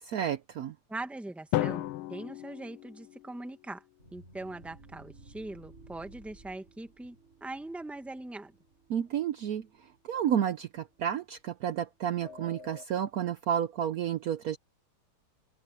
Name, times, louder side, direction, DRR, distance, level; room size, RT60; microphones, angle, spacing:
voice 1, 0.0-0.7 8.9-9.7 10.1-14.6, right 9 dB, 85° right, 0.8 m, -31 dB
voice 2, 0.9-3.8 4.1-8.5, right 2 dB, ahead, 1.0 m, -41 dB
Drum, 1.5-3.6, left 15 dB, 85° left, 1.5 m, -34 dB
sound 1, 4.0-11.3 12.1-12.9, equal, 30° right, 5.4 m, -54 dB
open air
omnidirectional pair, 2.4 m